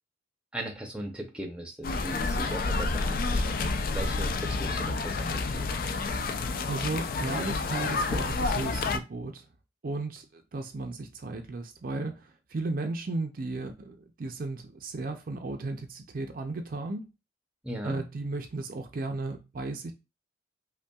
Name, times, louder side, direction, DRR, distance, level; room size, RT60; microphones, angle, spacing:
voice 1, 0.5-5.7 17.6-18.0, right 1 dB, 5° right, 0.6 m, -38 dB
sound 1, 1.8-9.0, left 3 dB, 50° left, 0.3 m, -29 dB
voice 2, 6.7-9.4 9.8-17.1 17.8-19.9, right 3 dB, 50° right, 0.4 m, -35 dB
5.3 x 2.2 x 2.3 m
head